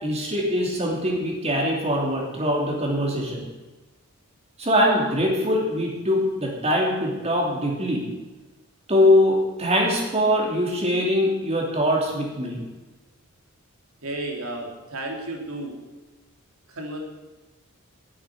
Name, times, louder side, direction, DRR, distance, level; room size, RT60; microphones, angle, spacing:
voice 1, 0.0-3.4 4.6-8.0 8.9-12.6, left 1 dB, 30° right, -1 dB, 3.0 m, -22 dB
voice 2, 14.0-15.7 16.7-17.0, right 2 dB, 75° right, 1 dB, 3.1 m, -32 dB
9.9 x 8.6 x 9.5 m, 1.2 s
head